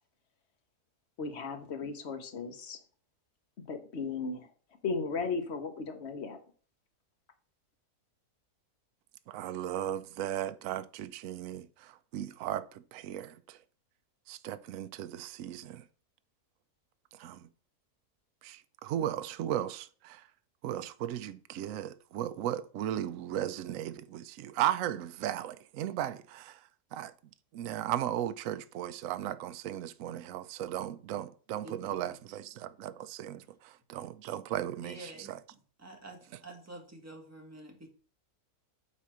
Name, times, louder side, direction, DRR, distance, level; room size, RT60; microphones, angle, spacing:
voice 1, 1.2-2.8 3.7-4.5 4.8-6.4, left 4 dB, 45° left, 1.4 m, -36 dB
voice 2, 9.3-13.6 14.3-15.8 17.1-17.5 18.4-20.2 20.6-26.6 26.9-27.1 27.5-35.0 35.3-35.4, right 11 dB, 65° right, 0.9 m, -36 dB
voice 3, 31.6-32.0 34.8-35.3 35.8-37.9, right 1 dB, 10° right, 1.8 m, -48 dB
8.4 x 4.2 x 6.1 m
omnidirectional pair, 1.7 m